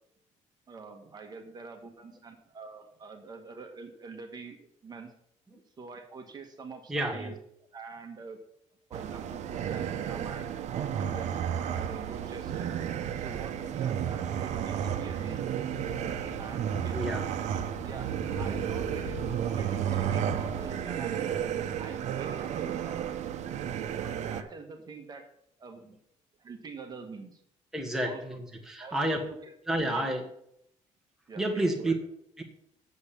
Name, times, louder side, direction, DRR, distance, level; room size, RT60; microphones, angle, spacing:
voice 1, 0.7-5.1 5.8-7.3 7.7-8.4 8.9-11.4 11.7-12.7 13.2-15.5 15.9-17.1 17.7-21.3 21.8-23.0 24.0-25.3 25.6-25.8 26.4-27.4 28.0-28.2 28.8-30.2 31.3-32.0, right 4 dB, 35° right, 4 dB, 1.4 m, -45 dB
voice 2, 6.9-7.3 16.9-17.2 27.7-29.2 29.7-30.2 31.4-31.9 32.4-32.5, right 1 dB, 5° right, 1 dB, 1.4 m, -30 dB
sound 1, 8.9-24.4, right 9 dB, 65° right, 0.8 m, -32 dB
sound 2, 15.7-20.8, left 4 dB, 65° left, 3.1 m, -45 dB
8.0 x 7.3 x 6.9 m, 0.74 s
cardioid pair, 140°, 13 cm